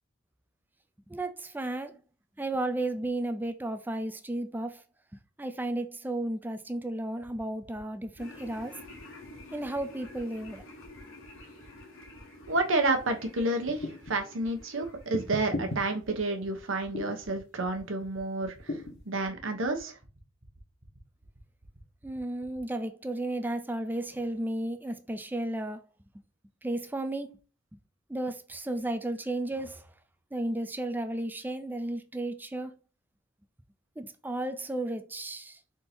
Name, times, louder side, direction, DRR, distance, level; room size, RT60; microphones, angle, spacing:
voice 1, 1.1-2.0 2.4-4.8 5.4-8.8 9.5-10.6 22.0-25.8 26.6-27.3 28.1-29.9 30.3-32.8 34.0-35.6, right 1 dB, 10° right, 0.4 m, -33 dB
sound 1, 7.2-22.6, right 1 dB, 40° right, 1.1 m, -58 dB
sound 2, 8.2-15.8, left 2 dB, 75° left, 1.4 m, -50 dB
voice 2, 12.5-20.0, right 2 dB, 75° right, 0.9 m, -30 dB
sound 3, 13.7-14.2 15.1-15.8 16.9-17.2 18.7-19.0, left 1 dB, 55° left, 1.0 m, -35 dB
3.6 x 2.8 x 4.2 m
head